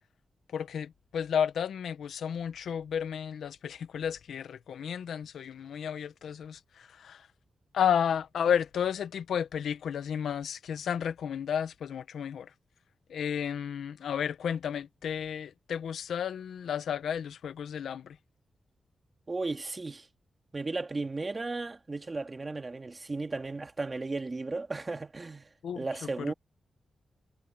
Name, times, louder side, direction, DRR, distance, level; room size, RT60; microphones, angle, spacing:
voice 1, 0.5-7.3 7.7-12.5 13.1-18.2 25.6-26.3, left 8 dB, 90° left, 1.2 m, -32 dB
voice 2, 19.3-20.1 20.5-25.5 25.8-26.3, right 3 dB, 30° right, 2.3 m, -35 dB
wide cardioid pair, 115°, 0 cm